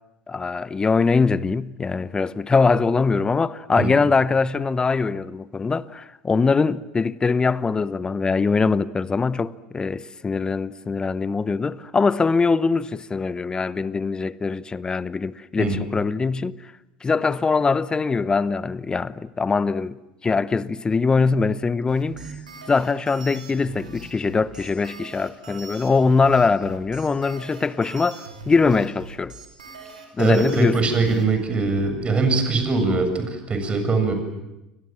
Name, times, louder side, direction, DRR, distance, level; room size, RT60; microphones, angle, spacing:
voice 1, 0.3-16.7 17.0-20.0 20.2-22.3 22.7-29.3 30.2-30.8, left 4 dB, 20° left, 0.9 m, -22 dB
sound 1, 21.9-31.2, right 3 dB, 80° right, 5.1 m, -41 dB
voice 2, 30.2-34.1, right 3 dB, 25° right, 7.5 m, -22 dB
29.5 x 25.0 x 7.5 m
figure-of-eight pair, 75°, 4 cm